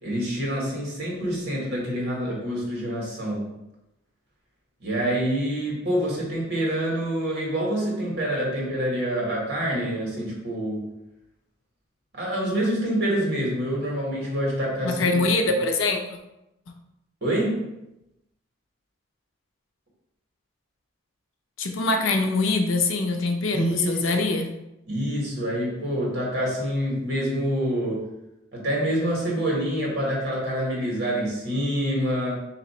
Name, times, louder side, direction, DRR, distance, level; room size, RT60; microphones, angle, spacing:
voice 1, 0.0-3.5 4.8-10.9 12.1-15.5 17.2-17.8 23.5-24.1 24.9-28.1 28.5-32.4, equal, 60° right, -3 dB, 1.6 m, -26 dB
voice 2, 14.8-16.2 21.6-24.5, left 3 dB, 85° left, 4 dB, 0.6 m, -23 dB
4.0 x 2.9 x 4.3 m, 0.90 s
head